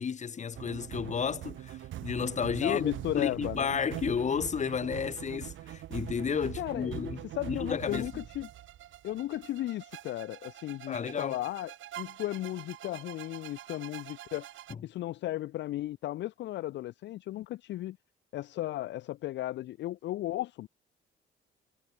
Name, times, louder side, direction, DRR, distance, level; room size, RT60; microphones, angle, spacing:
voice 1, 0.0-7.2 7.5-8.1 10.9-11.4, left 6 dB, 35° left, 1.0 m, -32 dB
sound 1, 0.5-14.7, right 13 dB, 75° right, 1.3 m, -43 dB
voice 2, 2.6-3.7 6.6-6.9 7.3-8.5 9.0-14.5 14.8-18.0 18.3-20.7, left 15 dB, 65° left, 0.4 m, -35 dB
cardioid pair, 90°, 20 cm